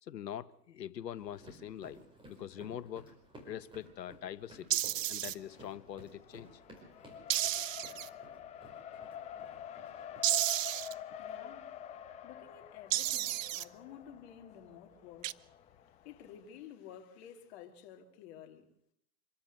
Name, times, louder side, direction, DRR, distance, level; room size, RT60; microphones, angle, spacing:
voice 1, 0.0-3.1 3.4-4.8 5.1-6.5, left 10 dB, 85° left, 1.3 m, -43 dB
sound 1, 1.1-10.2, right 1 dB, 10° right, 5.0 m, -56 dB
sound 2, 4.7-5.3 7.3-8.1 10.2-10.9 12.9-13.6 15.2-15.3, right 14 dB, 55° right, 0.7 m, -32 dB
Race car auto racing, 5.4-16.4, left 9 dB, 15° left, 0.8 m, -48 dB
voice 2, 11.2-11.7 12.2-18.7, left 9 dB, 40° left, 2.6 m, -52 dB
26.0 x 13.0 x 7.9 m
hypercardioid pair, 145°, 48 cm